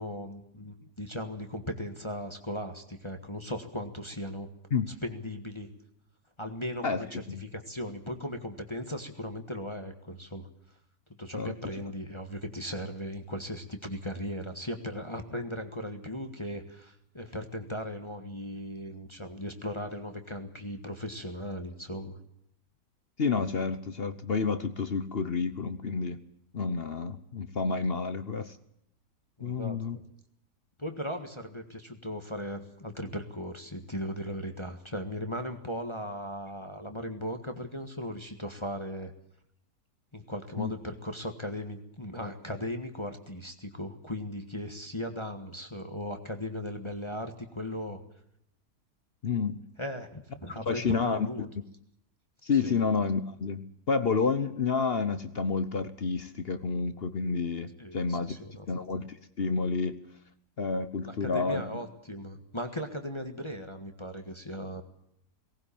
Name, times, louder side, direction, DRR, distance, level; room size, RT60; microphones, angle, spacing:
voice 1, 0.0-4.5 4.9-5.7 6.4-10.5 11.2-22.2 29.4-30.0 30.8-39.1 40.1-48.0 49.8-51.5 52.5-52.8 57.7-58.6 61.0-64.8, left 1 dB, 20° left, 5 dB, 1.6 m, -37 dB
voice 2, 6.8-7.4 11.3-11.5 23.2-26.2 26.5-28.6 29.4-30.0 40.6-40.7 49.2-49.6 50.7-51.3 52.4-58.4 58.7-60.0 60.6-61.6, left 5 dB, 45° left, 11 dB, 1.0 m, -29 dB
19.0 x 18.0 x 8.6 m, 0.73 s
omnidirectional pair, 1.8 m